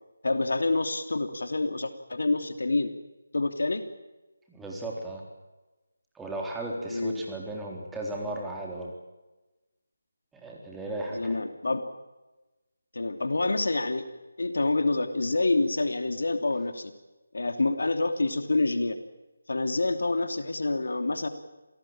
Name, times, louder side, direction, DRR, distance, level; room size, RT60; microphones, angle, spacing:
voice 1, 0.2-2.9 3.3-3.8 6.9-7.2 11.1-11.8 12.9-14.0 14.4-16.9 17.3-19.0 19.5-21.3, left 2 dB, 75° left, 8 dB, 2.9 m, -27 dB
voice 2, 4.5-5.2 6.1-8.9 10.3-11.4, right 1 dB, 5° right, -1 dB, 3.6 m, -35 dB
27.5 x 18.5 x 8.8 m, 1.1 s
figure-of-eight pair, 165°, 0 cm